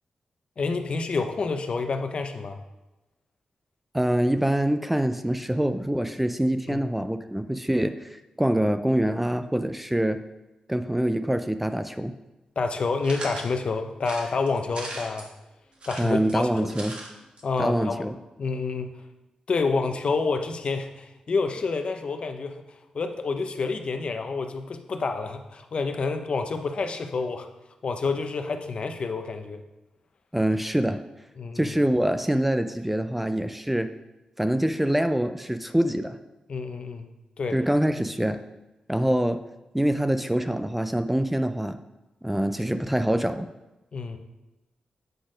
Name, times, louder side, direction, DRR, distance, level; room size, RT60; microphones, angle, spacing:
voice 1, 0.6-2.6 6.7-6.8 12.6-15.3 15.9-16.7 17.4-18.1 18.4-19.0 19.5-27.5 27.8-29.6 31.4-31.7 36.5-37.1 37.4-37.6 43.9-44.2, left 4 dB, 55° left, 7 dB, 0.7 m, -28 dB
voice 2, 3.9-10.2 10.7-12.1 16.0-16.9 17.6-18.1 30.3-31.0 31.6-33.9 34.4-36.2 37.5-38.4 38.9-39.4 39.7-41.8 42.2-43.5, right 1 dB, 5° right, 10 dB, 0.3 m, -25 dB
sound 1, 13.0-13.5 14.0-15.3 15.7-17.1 17.4-17.5 17.7-17.8, right 2 dB, 55° right, 1.4 m, -38 dB
7.9 x 4.2 x 5.0 m, 1.0 s
wide cardioid pair, 110°, 2 cm